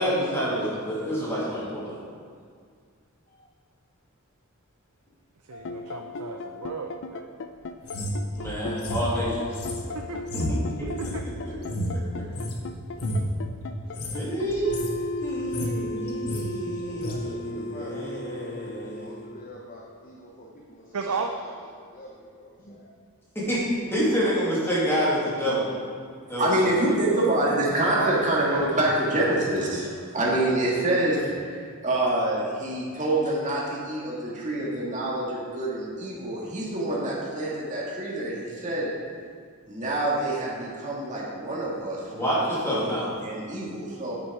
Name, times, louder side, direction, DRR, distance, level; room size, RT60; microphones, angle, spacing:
voice 1, 0.0-2.0 8.3-9.5 10.3-10.9 11.2-11.5 14.1-19.2 23.3-23.6 23.9-25.7 26.3-26.7 42.1-43.1, equal, 10° left, -8 dB, 2.4 m, -28 dB
sound 1, 5.5-19.5, left 2 dB, 60° left, 0.5 m, -35 dB
voice 2, 5.5-7.3 9.9-10.2 10.8-11.2 20.9-21.3 27.9-28.8, right 5 dB, 85° right, 4 dB, 0.5 m, -33 dB
sound 2, 7.8-12.6 12.9-13.3 13.8-14.2 14.5-15.0 15.3-16.5 17.0-17.2, equal, 85° left, 1.2 m, -31 dB
voice 3, 9.8-10.1 16.8-17.4 17.7-21.5 21.9-22.9 26.8-27.2 27.7-28.3, left 1 dB, 40° left, -2 dB, 0.8 m, -44 dB
voice 4, 26.4-38.9 39.7-42.9 43.2-44.1, right 1 dB, 35° right, -5 dB, 1.8 m, -26 dB
8.8 x 6.1 x 4.7 m, 2.1 s
head